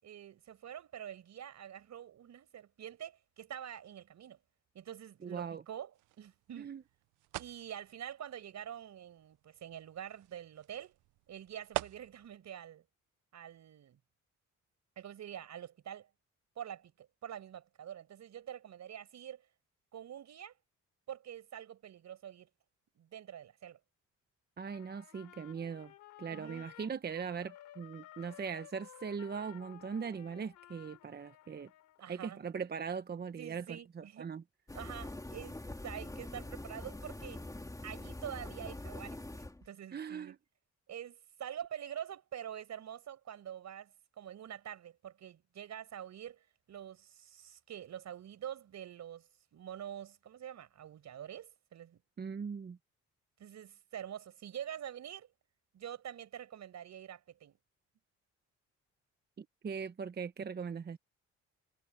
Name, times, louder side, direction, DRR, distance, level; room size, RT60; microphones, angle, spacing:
voice 1, 0.0-4.4 4.7-6.7 7.4-11.0 11.3-12.8 13.3-14.0 14.9-16.1 16.5-19.4 19.9-20.5 21.1-22.5 22.9-23.8 26.3-26.7 32.0-32.4 33.4-34.3 34.7-35.6 35.8-37.4 37.8-40.4 40.9-52.0 53.4-55.3 55.7-57.6, right 10 dB, 65° right, 5.2 m, -46 dB
voice 2, 5.2-5.6 6.6-6.8 24.6-25.9 26.2-31.7 32.1-34.4 39.9-40.4 52.2-52.8 59.4-61.0, right 6 dB, 35° right, 0.9 m, -40 dB
sound 1, 5.9-12.4, right 19 dB, 85° right, 0.5 m, -46 dB
Trumpet, 24.7-32.0, left 14 dB, 90° left, 3.2 m, -55 dB
sound 2, 34.7-39.7, left 2 dB, 10° left, 3.5 m, -44 dB
cardioid pair, 90°, 30 cm